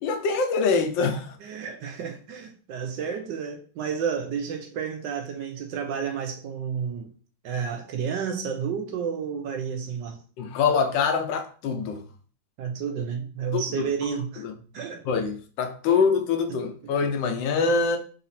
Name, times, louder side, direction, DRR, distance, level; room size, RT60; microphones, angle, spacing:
voice 1, 0.0-1.4 10.4-12.0 13.5-13.8 14.4-14.5 15.1-18.0, left 5 dB, 75° left, 1.3 m, -24 dB
voice 2, 1.4-7.1 7.4-10.2 12.6-14.4 14.7-15.0 16.8-16.9, right 7 dB, 75° right, 1.2 m, -31 dB
4.0 x 2.8 x 4.1 m
omnidirectional pair, 2.2 m